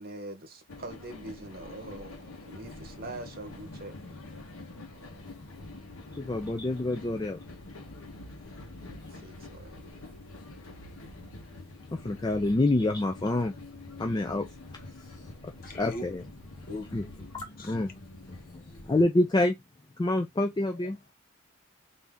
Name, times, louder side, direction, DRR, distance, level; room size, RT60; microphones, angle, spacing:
voice 1, 0.0-4.0 8.8-10.1, right 2 dB, 45° right, 0.9 m, -44 dB
sound 1, 0.7-19.1, left 2 dB, 90° left, 0.9 m, -46 dB
voice 2, 6.1-7.4 11.9-13.5 14.0-14.5 14.7-14.8 15.2-15.3 15.6-16.2 16.9-17.0 17.3-17.9 18.9-19.5 20.0-21.0, left 2 dB, 20° left, 0.3 m, -27 dB
voice 3, 15.6-16.0 16.7-16.9 17.6-17.8 20.7-21.1, left 1 dB, 45° left, 0.9 m, -41 dB
3.4 x 2.6 x 3.6 m
head